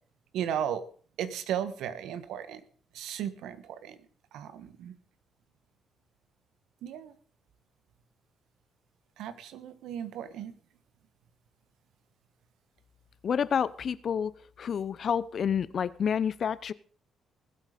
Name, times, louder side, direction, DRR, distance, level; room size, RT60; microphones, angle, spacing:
voice 1, 0.3-0.8 1.2-2.6 2.9-4.0 4.3-4.9 6.8-7.1 9.2-10.5, right 9 dB, 85° right, 1.3 m, -35 dB
voice 2, 13.2-14.3 14.6-16.7, left 7 dB, 55° left, 0.8 m, -29 dB
19.5 x 8.2 x 5.1 m
cardioid pair, 90°, 0 cm